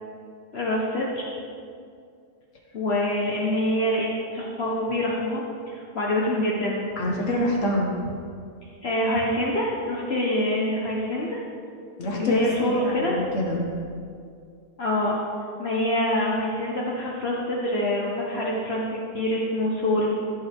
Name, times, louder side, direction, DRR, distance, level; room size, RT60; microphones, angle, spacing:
voice 1, 0.5-1.3 2.7-6.8 8.8-11.4 12.0-13.2 14.8-15.2 15.6-20.1, left 1 dB, 55° left, -4 dB, 1.4 m, -25 dB
voice 2, 7.0-7.9 12.0-13.6, left 1 dB, 75° left, -2 dB, 1.7 m, -26 dB
15.5 x 8.6 x 3.6 m, 2.3 s
omnidirectional pair, 1.3 m